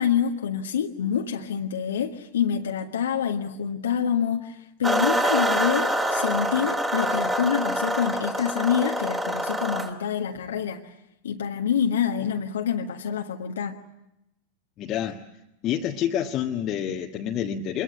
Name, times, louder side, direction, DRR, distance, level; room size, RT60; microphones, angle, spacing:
voice 1, 0.0-10.9 11.2-13.8, left 8 dB, 65° left, 1.4 m, -26 dB
sound 1, 4.8-9.9, right 1 dB, 10° right, 2.8 m, -25 dB
voice 2, 14.8-15.2 15.6-17.8, left 10 dB, 35° left, 1.4 m, -28 dB
26.0 x 22.5 x 8.5 m
figure-of-eight pair, 90°, 0 cm